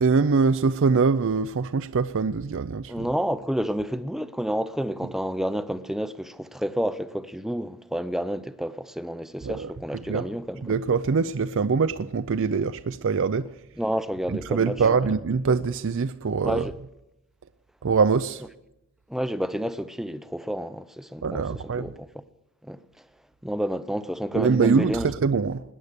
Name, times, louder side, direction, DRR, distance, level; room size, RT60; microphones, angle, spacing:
voice 1, 0.0-3.1 9.4-9.7 10.1-10.3 10.6-13.5 14.3-16.7 17.8-18.4 21.2-21.9 24.3-25.6, right 5 dB, 60° right, 0.5 m, -23 dB
voice 2, 2.9-10.6 13.8-15.1 16.4-16.8 19.1-22.2 22.6-22.8 23.4-25.1, equal, ahead, 0.5 m, -30 dB
18.5 x 10.0 x 6.7 m
head